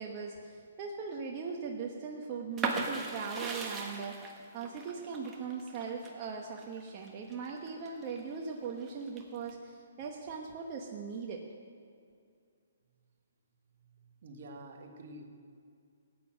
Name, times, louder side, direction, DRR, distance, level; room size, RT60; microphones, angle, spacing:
voice 1, 0.0-11.4, right 5 dB, 30° right, 0 dB, 1.2 m, -40 dB
sound 1, 2.6-8.2 8.6-9.5, right 4 dB, 15° right, 1.5 m, -38 dB
voice 2, 14.2-15.3, right 1 dB, 55° right, 3 dB, 1.9 m, -48 dB
16.0 x 9.3 x 6.3 m, 2.3 s
hypercardioid pair, 150°, 0 cm